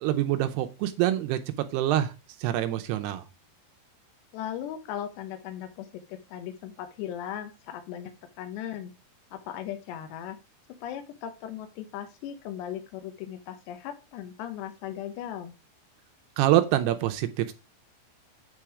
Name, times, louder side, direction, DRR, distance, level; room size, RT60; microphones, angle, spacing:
voice 1, 0.0-1.4 1.7-2.1 2.4-3.2 16.4-17.5, right 13 dB, 80° right, 8 dB, 2.5 m, -25 dB
voice 2, 4.3-8.9 9.3-10.4 10.8-15.5, left 10 dB, 80° left, 7 dB, 3.0 m, -38 dB
9.0 x 4.5 x 4.9 m, 0.30 s
omnidirectional pair, 5.1 m